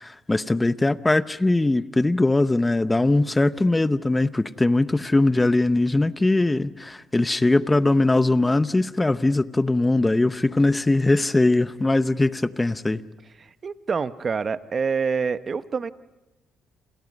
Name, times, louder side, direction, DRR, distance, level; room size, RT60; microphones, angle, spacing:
voice 1, 0.0-13.0, left 2 dB, 15° left, 0.8 m, -21 dB
voice 2, 13.4-15.9, right 5 dB, 40° right, 0.9 m, -26 dB
29.0 x 27.5 x 5.4 m
cardioid pair, 90°, 0 cm